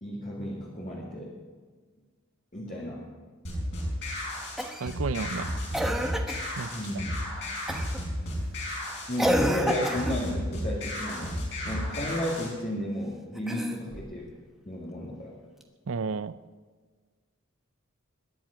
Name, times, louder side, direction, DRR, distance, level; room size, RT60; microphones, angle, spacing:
voice 1, 0.0-1.3 2.5-3.1 6.7-7.1 9.1-11.4 11.7-14.3 14.7-15.3, equal, 35° left, -4 dB, 2.3 m, -33 dB
sound 1, 3.4-12.5, left 1 dB, 60° left, 6.3 m, -33 dB
Cough, 4.6-5.0 5.7-6.5 7.7-8.0 9.2-10.3 13.4-14.1 15.6-15.7, equal, ahead, 1.1 m, -29 dB
voice 2, 4.8-5.6 6.6-6.7 15.9-16.4, right 4 dB, 70° right, 16 dB, 0.5 m, -32 dB
21.5 x 10.5 x 5.1 m, 1.5 s
head